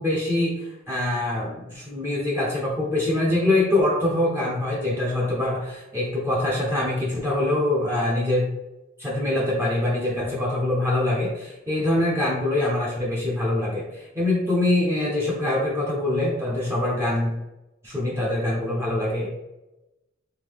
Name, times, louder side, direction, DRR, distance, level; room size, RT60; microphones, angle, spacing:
voice 1, 0.0-8.5 9.0-17.3 17.8-19.3, left 1 dB, 15° right, -5 dB, 0.7 m, -24 dB
3.5 x 3.2 x 3.4 m, 0.97 s
head